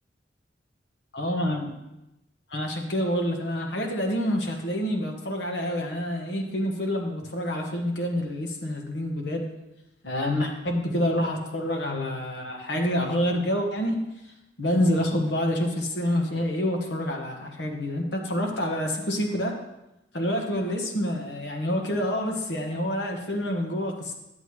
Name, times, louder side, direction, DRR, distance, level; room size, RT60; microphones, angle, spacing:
voice 1, 1.1-1.7 2.5-9.4 10.0-14.1 14.6-19.5 20.1-24.1, equal, 65° left, 1 dB, 1.2 m, -27 dB
11.0 x 7.7 x 3.2 m, 0.92 s
head